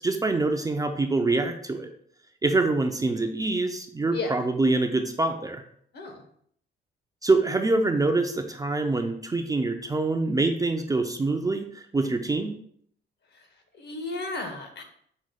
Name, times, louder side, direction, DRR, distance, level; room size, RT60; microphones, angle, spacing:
voice 1, 0.0-1.9 2.4-5.6 7.2-12.6, right 3 dB, 20° right, 5 dB, 0.4 m, -25 dB
voice 2, 4.1-4.4 5.9-6.2 13.3-14.8, left 2 dB, 55° left, 5 dB, 1.0 m, -34 dB
6.1 x 2.1 x 4.0 m, 0.65 s
cardioid pair, 90°, 20 cm